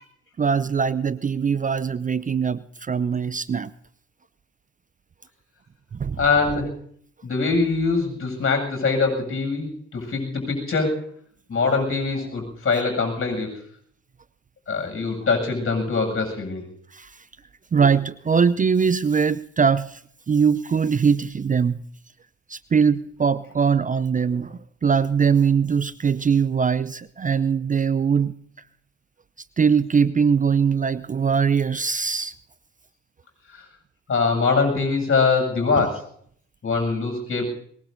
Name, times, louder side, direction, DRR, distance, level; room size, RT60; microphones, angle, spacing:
voice 1, 0.4-3.7 5.9-6.2 16.9-17.1 17.7-20.0 20.3-21.8 22.5-28.3 29.6-32.3 35.8-35.9, right 6 dB, 25° right, 17 dB, 0.5 m, -21 dB
voice 2, 6.2-6.7 7.2-11.0 11.5-13.5 14.7-16.6 33.5-33.6 34.1-36.0 36.6-37.5, left 4 dB, 40° left, 3 dB, 7.6 m, -23 dB
22.5 x 21.0 x 2.7 m, 0.63 s
hypercardioid pair, 50°, 34 cm